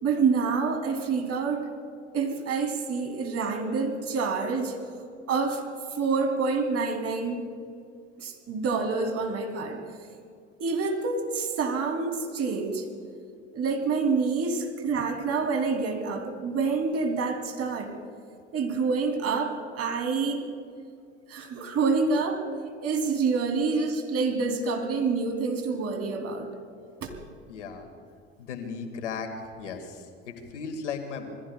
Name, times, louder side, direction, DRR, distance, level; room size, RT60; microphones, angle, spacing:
voice 1, 0.0-1.7 2.1-4.8 5.3-5.6 5.9-7.5 8.2-9.8 10.6-12.9 13.5-17.9 18.5-20.4 21.3-22.4 22.8-26.5 27.0-27.1, right 4 dB, 45° right, 4 dB, 3.2 m, -27 dB
voice 2, 27.5-27.9 28.4-29.3 29.6-31.3, left 5 dB, 85° left, 6 dB, 2.1 m, -36 dB
27.0 x 21.0 x 2.4 m, 2.3 s
hypercardioid pair, 70°, 35 cm